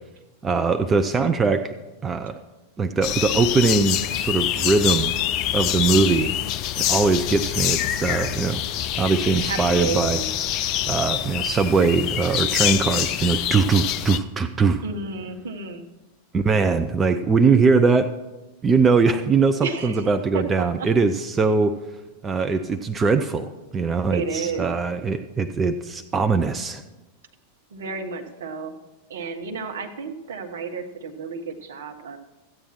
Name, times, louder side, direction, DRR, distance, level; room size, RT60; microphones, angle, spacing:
voice 1, 0.4-1.7 2.0-2.4 2.8-5.1 5.5-6.4 6.8-8.6 9.0-10.2 10.9-14.8 16.3-18.1 18.6-21.8 22.2-26.8, right 4 dB, 20° right, 9 dB, 0.5 m, -21 dB
sound 1, 3.0-14.2, left 12 dB, 40° left, 0.4 m, -25 dB
voice 2, 9.4-10.8 14.8-15.9 19.6-20.1 20.3-20.9 23.9-24.7 27.7-28.7 29.1-32.2, right 5 dB, 60° right, 5 dB, 1.1 m, -32 dB
14.0 x 8.7 x 4.5 m, 1.1 s
figure-of-eight pair, 90°, 0 cm